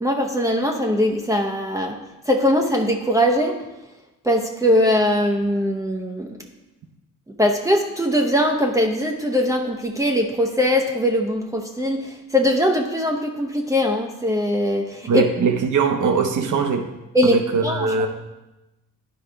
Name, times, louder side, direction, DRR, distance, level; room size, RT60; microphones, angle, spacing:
voice 1, 0.0-2.0 2.3-3.6 4.2-6.4 7.4-15.2 17.1-17.9, equal, 10° right, 1 dB, 0.7 m, -21 dB
voice 2, 15.1-16.9 17.2-18.1, right 5 dB, 65° right, 5 dB, 1.0 m, -21 dB
10.5 x 4.7 x 3.3 m, 1.0 s
cardioid pair, 85°, 33 cm